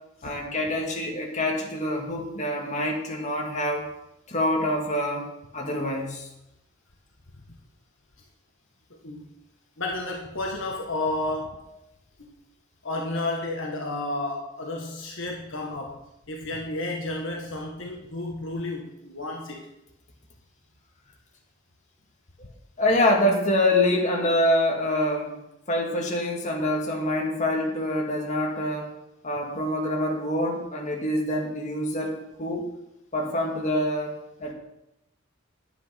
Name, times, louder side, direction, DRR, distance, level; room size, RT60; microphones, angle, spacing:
voice 1, 0.2-3.9 4.3-5.3 5.5-6.3 22.8-25.4 25.7-28.9 29.2-32.7 33.1-34.1 34.4-34.5, left 1 dB, 35° left, -1 dB, 2.3 m, -25 dB
voice 2, 9.0-9.3 9.8-11.7 12.8-16.0 16.3-19.6, left 2 dB, 60° left, 0 dB, 1.6 m, -31 dB
10.5 x 9.9 x 5.9 m, 0.86 s
head